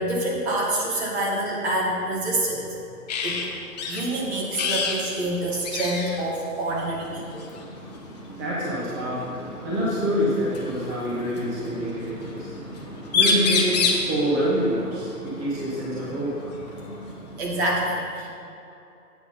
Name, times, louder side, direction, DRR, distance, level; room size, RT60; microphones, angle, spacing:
voice 1, 0.0-2.7 3.2-3.4 3.9-7.5 17.4-18.3, right 1 dB, 40° right, -3 dB, 2.0 m, -26 dB
sound 1, 3.1-3.5 3.8-4.0 4.5-5.0 5.3-5.4 5.6-6.2 7.4-7.6 9.3-9.4 10.5-11.4 12.8-12.9 13.1-14.1 16.0-16.1 16.6-17.6, left 4 dB, 25° left, 0.7 m, -25 dB
voice 2, 7.2-17.4, equal, 20° right, -8 dB, 1.5 m, -27 dB
8.4 x 6.0 x 5.5 m, 2.7 s
hypercardioid pair, 145°, 47 cm